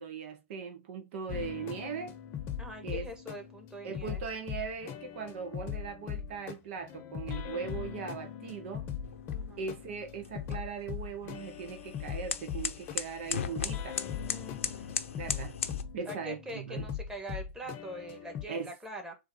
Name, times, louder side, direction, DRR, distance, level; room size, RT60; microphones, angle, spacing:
voice 1, 0.0-2.2 2.8-3.1 3.8-8.9 9.6-14.0 15.2-15.5 15.9-16.9 18.5-18.7, right 5 dB, 60° right, 0.8 m, -39 dB
sound 1, 1.3-18.4, left 8 dB, 35° left, 0.7 m, -40 dB
voice 2, 2.6-4.2 9.3-9.7 14.3-15.0 16.0-19.1, equal, 10° right, 1.4 m, -43 dB
sound 2, 9.0-15.8, left 7 dB, 80° left, 0.6 m, -38 dB
3.8 x 2.6 x 4.1 m
hypercardioid pair, 110°, 7 cm